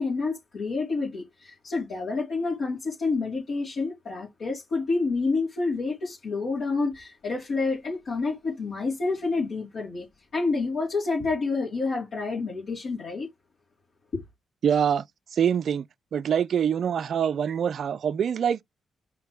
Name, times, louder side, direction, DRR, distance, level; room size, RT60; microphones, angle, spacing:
voice 1, 0.0-10.1 10.3-13.3, left 3 dB, 65° left, 2.9 m, -28 dB
voice 2, 14.6-15.0 15.3-15.9 16.1-18.6, right 8 dB, 60° right, 0.3 m, -24 dB
4.9 x 3.3 x 3.2 m
hypercardioid pair, 45°, 0 cm